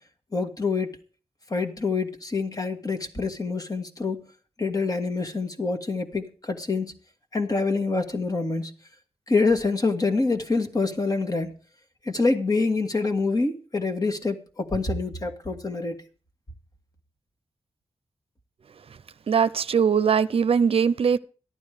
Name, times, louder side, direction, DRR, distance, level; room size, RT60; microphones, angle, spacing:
voice 1, 0.3-1.0 1.5-4.2 4.6-7.0 7.3-8.7 9.3-11.5 12.0-15.9, left 3 dB, 35° left, 1.8 m, -26 dB
voice 2, 19.3-21.2, right 6 dB, 65° right, 0.6 m, -21 dB
14.0 x 11.5 x 5.0 m
wide cardioid pair, 105°, 11 cm